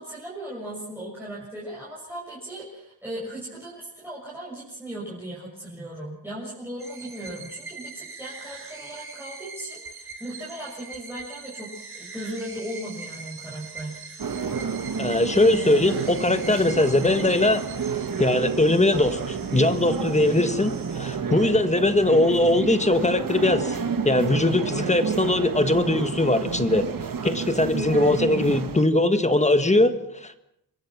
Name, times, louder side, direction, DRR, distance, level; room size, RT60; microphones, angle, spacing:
voice 1, 0.0-14.0, right 1 dB, 5° right, -7 dB, 6.7 m, -37 dB
sound 1, 6.8-18.7, right 4 dB, 30° right, 3.7 m, -42 dB
sound 2, 11.7-21.2, right 5 dB, 85° right, 4.7 m, -50 dB
sound 3, 14.2-28.8, right 6 dB, 55° right, 1.6 m, -30 dB
voice 2, 15.0-17.6 18.2-23.8 24.0-26.9 27.2-30.4, left 2 dB, 15° left, 9 dB, 1.6 m, -21 dB
27.0 x 22.5 x 6.1 m, 0.76 s
wide cardioid pair, 150°, 39 cm